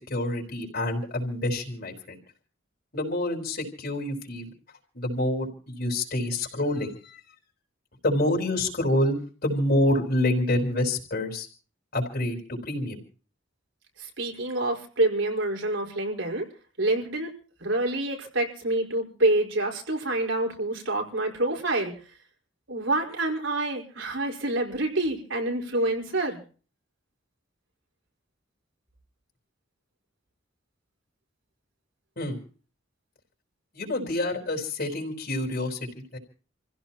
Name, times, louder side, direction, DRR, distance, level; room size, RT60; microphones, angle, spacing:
voice 1, 0.0-2.2 2.9-4.5 4.9-7.2 8.0-11.5 11.9-13.0 32.2-32.4 33.7-36.2, left 1 dB, 50° left, 0 dB, 4.9 m, -27 dB
voice 2, 14.0-16.5 16.8-17.3 17.6-21.9 22.7-26.4, right 2 dB, 80° right, 1 dB, 5.0 m, -27 dB
29.0 x 16.0 x 3.0 m, 0.40 s
head